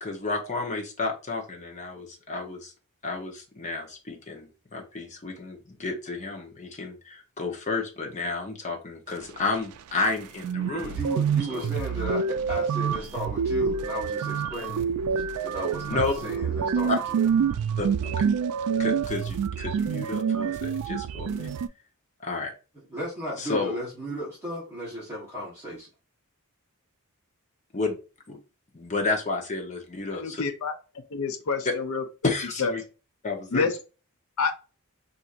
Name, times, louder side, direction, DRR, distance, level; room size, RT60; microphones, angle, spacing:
voice 1, 0.0-2.7 3.0-11.0 11.5-11.7 15.9-16.1 17.8-18.3 18.8-21.5 22.2-22.5 23.4-23.8 27.7-28.0 28.3-28.4 28.7-30.4 32.2-32.8 33.2-33.7, left 3 dB, 30° left, 1 dB, 0.8 m, -31 dB
sound 1, 10.1-10.2 10.4-21.7, right 6 dB, 80° right, 0.3 m, -27 dB
voice 2, 10.7-14.9 15.4-17.2 22.9-25.9, right 1 dB, 10° right, -8 dB, 1.2 m, -35 dB
voice 3, 30.1-30.7 31.1-32.0 32.6-32.7 33.5-33.7 34.4-34.5, left 4 dB, 70° left, 8 dB, 0.6 m, -27 dB
4.2 x 2.6 x 2.5 m, 0.33 s
head